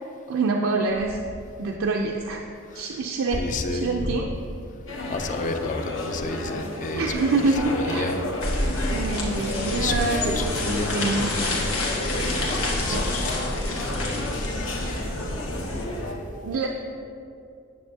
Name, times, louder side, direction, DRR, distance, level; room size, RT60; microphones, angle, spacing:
voice 1, 0.3-1.2 1.6-2.4 2.7-4.3 6.9-8.1 8.9-11.3 12.9-13.2 16.4-16.7, right 3 dB, 75° right, 1 dB, 0.4 m, -26 dB
voice 2, 3.4-3.9 5.1-7.3 7.7-8.2 8.7-9.0 9.8-14.8, left 3 dB, 35° left, 7 dB, 0.4 m, -32 dB
sound 1, 4.9-16.1, left 1 dB, 65° left, 0.9 m, -32 dB
sound 2, 8.4-15.9, left 1 dB, 85° left, 1.3 m, -28 dB
9.5 x 6.7 x 2.7 m, 2.6 s
head